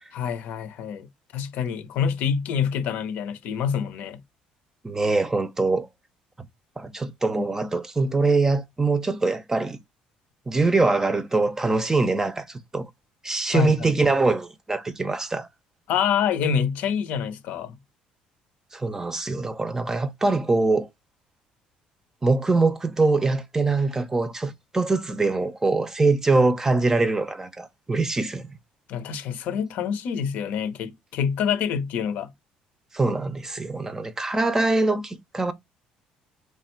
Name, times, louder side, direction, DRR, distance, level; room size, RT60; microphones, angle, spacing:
voice 1, 0.1-1.1 1.3-4.2 13.5-13.9 15.9-17.8 28.9-32.3, left 7 dB, 70° left, 0.7 m, -26 dB
voice 2, 4.8-5.9 6.8-9.8 10.5-12.9 13.2-15.5 18.7-20.9 22.2-28.5 32.9-35.5, right 3 dB, 20° right, 0.6 m, -23 dB
3.3 x 2.5 x 4.4 m
supercardioid pair, 85°, 3 cm